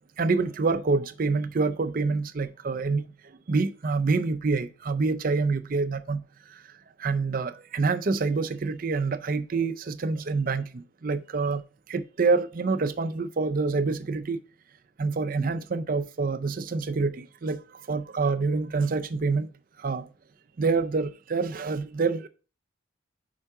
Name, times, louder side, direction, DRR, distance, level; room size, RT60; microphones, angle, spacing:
voice 1, 0.2-3.1 3.5-6.6 7.0-11.6 11.9-14.4 15.0-19.5 19.8-20.1 20.6-22.3, right 4 dB, 40° right, 0.4 m, -27 dB
5.6 x 4.5 x 4.7 m
head